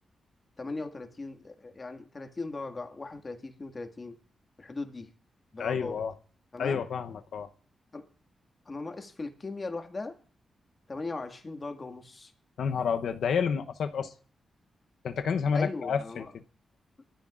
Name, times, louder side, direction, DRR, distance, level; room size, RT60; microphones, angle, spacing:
voice 1, 0.6-4.2 4.6-5.1 5.5-6.0 6.5-6.8 7.9-8.1 8.7-10.2 10.9-12.3 15.5-16.3, left 3 dB, 35° left, 1.9 m, -38 dB
voice 2, 5.6-6.1 6.6-7.5 12.6-14.1 15.0-16.4, left 6 dB, 80° left, 0.8 m, -29 dB
22.5 x 14.0 x 2.5 m
cardioid pair, 70°, 0 cm